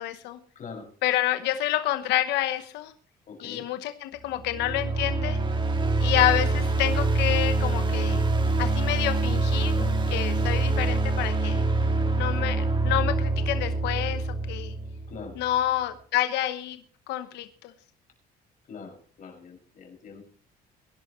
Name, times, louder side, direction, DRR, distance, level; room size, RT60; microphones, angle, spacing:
voice 1, 0.0-0.4 1.0-2.9 3.4-5.4 6.0-8.2 8.6-9.7 10.1-11.6 12.2-14.7 15.4-16.8 17.1-17.5, left 13 dB, 85° left, 9 dB, 1.0 m, -28 dB
voice 2, 0.5-0.9 3.3-3.7 9.7-10.0 15.1-15.9 18.7-20.2, left 5 dB, 50° left, 3 dB, 6.1 m, -43 dB
sound 1, 4.4-15.4, right 2 dB, 30° right, 1.9 m, -25 dB
22.5 x 11.5 x 3.1 m, 0.43 s
cardioid pair, 110°, 17 cm